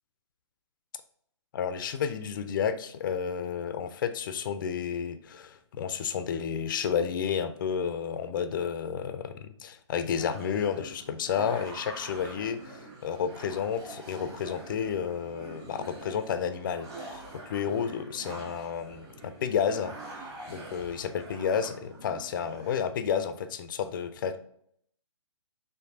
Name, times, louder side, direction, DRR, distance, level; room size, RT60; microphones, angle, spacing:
voice 1, 1.5-24.4, left 7 dB, 45° left, 10 dB, 0.4 m, -31 dB
sound 1, 10.2-22.7, right 2 dB, 25° right, 1.3 m, -45 dB
4.5 x 3.2 x 2.6 m, 0.67 s
hypercardioid pair, 140°, 15 cm